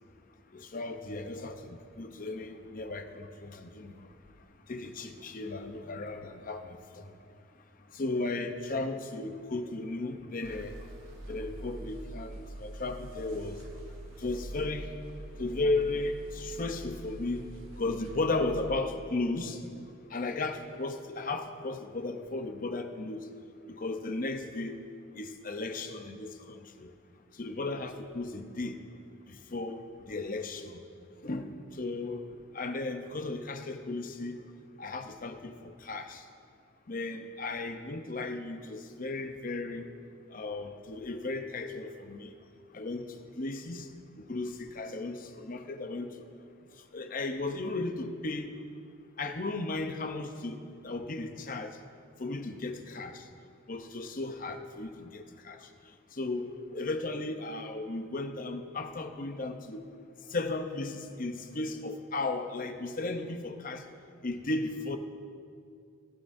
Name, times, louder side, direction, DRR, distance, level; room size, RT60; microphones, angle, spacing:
voice 1, 0.5-4.1 4.7-7.1 7.9-10.8 11.3-13.7 14.2-14.9 15.4-17.5 17.8-19.8 20.1-23.3 23.7-24.8 25.1-26.9 27.3-28.8 29.3-30.8 31.2-32.2 32.5-34.4 34.8-36.3 36.9-39.9 40.3-42.4 42.7-43.1 43.4-43.9 44.2-46.2 46.9-48.5 49.2-51.8 52.2-53.3 53.7-55.7 56.1-59.8 60.3-63.9 64.2-65.0, left 2 dB, 40° left, 7 dB, 0.7 m, -35 dB
sound 1, 10.4-18.7, right 1 dB, 70° right, 1.0 m, -44 dB
16.0 x 15.0 x 2.6 m, 2.4 s
head